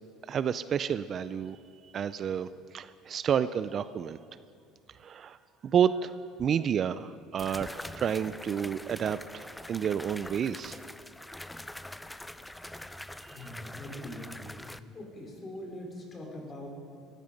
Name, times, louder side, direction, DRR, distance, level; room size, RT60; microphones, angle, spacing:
voice 1, 0.3-1.6 1.8-4.2 4.9-5.4 5.6-10.8 13.2-13.5, right 8 dB, 40° right, 14 dB, 0.4 m, -30 dB
sound 1, 6.4-6.5 7.4-14.8, left 1 dB, 5° left, 0.5 m, -44 dB
voice 2, 13.3-14.5 14.9-16.7, left 1 dB, 30° left, 0 dB, 4.6 m, -42 dB
19.0 x 14.5 x 5.3 m, 2.3 s
supercardioid pair, 105°, 0 cm